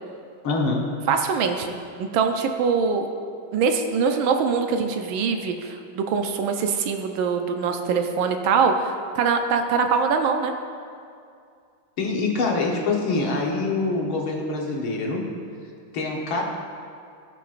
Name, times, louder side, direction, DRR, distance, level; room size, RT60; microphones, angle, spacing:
voice 1, 0.4-0.9 12.0-15.3 15.9-16.4, left 3 dB, 75° left, -1 dB, 2.0 m, -25 dB
voice 2, 1.1-1.7 2.0-3.1 3.5-10.5, right 5 dB, 75° right, 5 dB, 1.4 m, -23 dB
18.0 x 6.0 x 2.5 m, 2.4 s
omnidirectional pair, 2.3 m